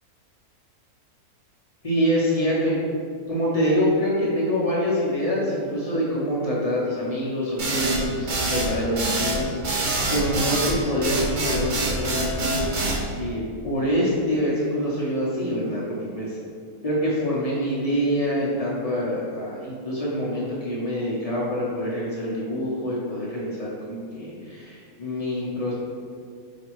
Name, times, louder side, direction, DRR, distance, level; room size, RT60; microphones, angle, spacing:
voice 1, 1.8-2.8 3.3-9.6 10.1-12.6 13.2-16.4 16.8-25.7, equal, 35° left, -7 dB, 0.6 m, -25 dB
sound 1, 7.6-13.0, right 2 dB, 90° right, 0.4 m, -25 dB
5.0 x 2.9 x 3.0 m, 2.1 s
omnidirectional pair, 1.6 m